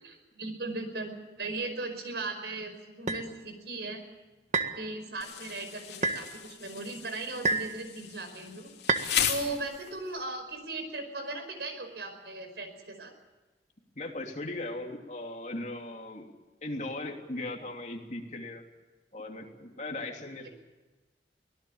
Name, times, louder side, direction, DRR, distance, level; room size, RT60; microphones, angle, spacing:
voice 1, 0.0-1.1 1.4-4.0 4.7-8.7 9.3-13.1, right 2 dB, 75° right, 7 dB, 5.3 m, -37 dB
sound 1, 3.1-3.3 4.5-4.8 6.0-6.2 7.4-7.8 8.9-9.1, right 3 dB, 40° right, 1.6 m, -27 dB
Insect, 5.2-10.2, left 9 dB, 75° left, 3.2 m, -36 dB
voice 2, 13.9-16.3 16.6-18.6 19.1-20.5, left 2 dB, 40° left, 2 dB, 3.0 m, -38 dB
24.0 x 18.5 x 7.2 m, 1.2 s
head